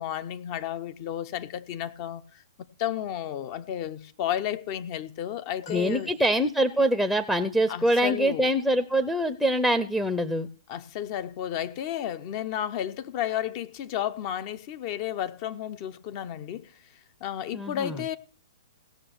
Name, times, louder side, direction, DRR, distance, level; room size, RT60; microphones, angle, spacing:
voice 1, 0.0-6.1 7.7-8.5 10.7-16.7 17.2-18.2, left 10 dB, 40° left, 0.8 m, -32 dB
sound 1, 5.6-7.0 9.4-9.6 10.9-11.0, left 2 dB, 60° left, 3.2 m, -50 dB
voice 2, 5.7-10.5 17.5-18.0, equal, 5° left, 0.7 m, -24 dB
17.0 x 6.3 x 6.1 m
hypercardioid pair, 125°, 3 cm